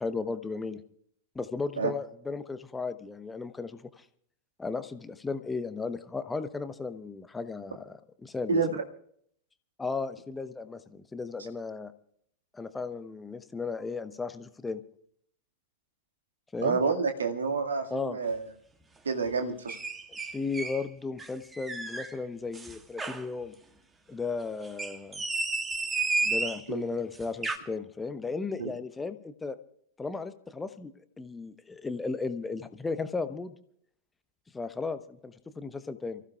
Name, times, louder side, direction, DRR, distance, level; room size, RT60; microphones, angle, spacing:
voice 1, 0.0-0.8 1.3-4.0 4.6-8.8 9.8-11.9 12.5-14.8 16.5-16.8 17.9-18.2 20.3-23.5 24.1-25.2 26.2-29.6 30.0-30.9 31.2-33.5 34.5-36.2, left 4 dB, 10° left, 12 dB, 1.0 m, -35 dB
voice 2, 8.5-8.8 16.6-18.5 19.1-19.8 26.7-26.8 28.6-28.7, right 4 dB, 70° right, 4 dB, 1.9 m, -28 dB
sound 1, 19.7-20.8 21.2-22.1 22.5-23.3 24.6-26.6 27.2-27.6, right 3 dB, 15° right, 1.4 m, -32 dB
29.5 x 15.0 x 2.4 m, 0.66 s
figure-of-eight pair, 90°, 0 cm